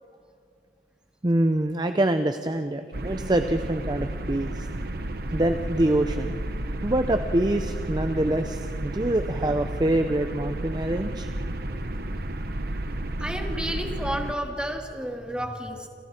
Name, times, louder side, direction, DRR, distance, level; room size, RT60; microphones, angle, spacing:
voice 1, 1.2-4.7 5.3-6.3 6.8-11.3, right 1 dB, 25° right, 7 dB, 0.7 m, -25 dB
sound 1, 2.9-14.3, right 1 dB, 60° right, 1.3 m, -32 dB
voice 2, 13.0-15.9, equal, 5° right, 2 dB, 2.4 m, -32 dB
29.0 x 27.0 x 4.4 m, 2.4 s
head